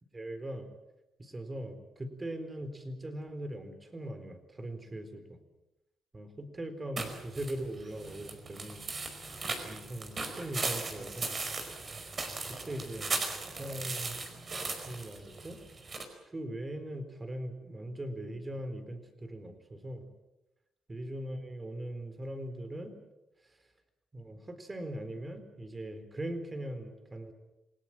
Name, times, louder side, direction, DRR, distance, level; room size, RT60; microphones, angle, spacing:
voice 1, 0.1-0.7 1.2-5.4 6.1-8.8 9.6-11.4 12.6-13.2 13.6-14.2 14.8-15.6 16.3-20.1 20.9-23.0 24.1-27.3, right 1 dB, 25° right, 9 dB, 4.1 m, -40 dB
sound 1, 7.0-16.0, right 3 dB, 40° right, 4.9 m, -38 dB
28.0 x 18.5 x 7.6 m, 0.96 s
cardioid pair, 90°, 0 cm